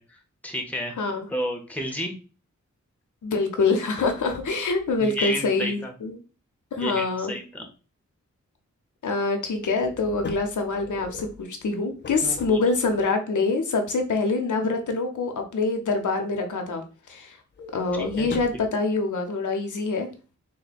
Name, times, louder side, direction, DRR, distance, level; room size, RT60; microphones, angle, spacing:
voice 1, 0.0-1.0 1.3-2.1 5.0-5.9 6.8-7.6 12.2-12.6 17.9-18.3, left 1 dB, 5° left, 3 dB, 0.8 m, -32 dB
voice 2, 1.0-1.3 3.2-6.2 6.7-7.3 9.0-16.8 17.1-17.4 17.7-20.1, left 3 dB, 80° left, 4 dB, 0.7 m, -25 dB
sound 1, 3.7-5.0 9.5-13.0 17.5-18.7, left 3 dB, 40° left, 0.5 m, -40 dB
3.6 x 2.1 x 4.1 m, 0.36 s
wide cardioid pair, 110°, 30 cm